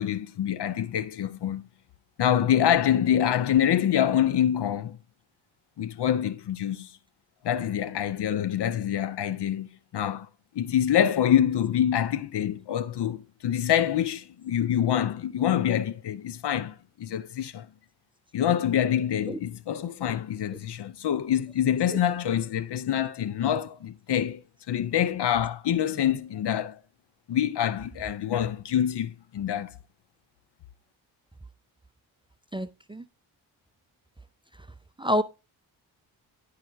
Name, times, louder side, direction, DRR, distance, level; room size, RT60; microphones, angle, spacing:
voice 1, 0.0-1.7 2.2-5.0 5.8-6.9 7.4-10.3 10.5-17.7 18.3-24.4 24.7-26.8 27.3-29.7, left 10 dB, 60° left, 0.8 m, -26 dB
voice 2, 32.5-33.0 35.0-35.2, equal, 10° right, 0.5 m, -27 dB
10.5 x 5.0 x 3.4 m
supercardioid pair, 50°, 46 cm